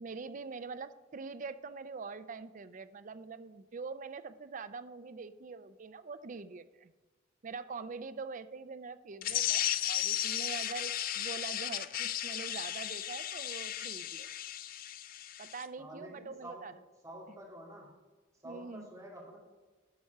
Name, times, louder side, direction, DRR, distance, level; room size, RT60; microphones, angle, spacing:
voice 1, 0.0-6.9 7.4-14.3 15.4-16.7 18.4-18.9, right 4 dB, 40° right, 13 dB, 0.4 m, -44 dB
sound 1, 9.2-15.6, left 12 dB, 45° left, 0.4 m, -35 dB
voice 2, 15.8-16.7 17.0-17.9 18.4-19.4, right 1 dB, 15° right, -4 dB, 2.4 m, -48 dB
11.0 x 4.6 x 6.4 m, 1.3 s
head